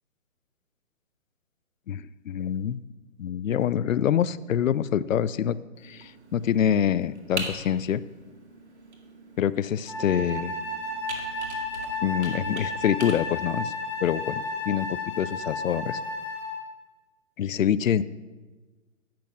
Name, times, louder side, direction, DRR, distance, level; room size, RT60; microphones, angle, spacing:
voice 1, 1.9-2.8 3.2-5.6 5.8-8.0 9.4-10.5 12.0-13.7 14.0-16.0 17.4-18.0, left 9 dB, 75° left, 18 dB, 0.5 m, -26 dB
Computer keyboard, 5.7-13.1, right 3 dB, 60° right, 1.9 m, -41 dB
Wind instrument woodwind instrument, 9.9-16.6, left 2 dB, 5° left, 0.9 m, -33 dB
8.7 x 6.0 x 6.0 m, 1.2 s
hypercardioid pair, 175°, 40 cm